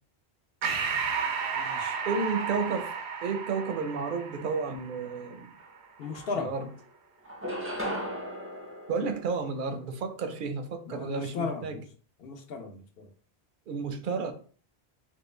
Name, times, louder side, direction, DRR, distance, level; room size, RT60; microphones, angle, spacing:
Breathing, 0.6-5.5, right 6 dB, 90° right, 0.8 m, -33 dB
voice 1, 1.5-2.0 6.0-6.5 10.9-11.8 12.2-13.1, left 4 dB, 65° left, 5 dB, 0.8 m, -36 dB
voice 2, 2.1-2.9 3.2-5.5 6.3-6.7 8.9-11.8 13.7-14.3, right 4 dB, 60° right, 7 dB, 0.6 m, -32 dB
sound 1, 5.6-5.7 6.0-6.8 7.3-9.9, equal, 15° right, 0.5 m, -37 dB
3.7 x 2.1 x 3.1 m, 0.42 s
omnidirectional pair, 1.1 m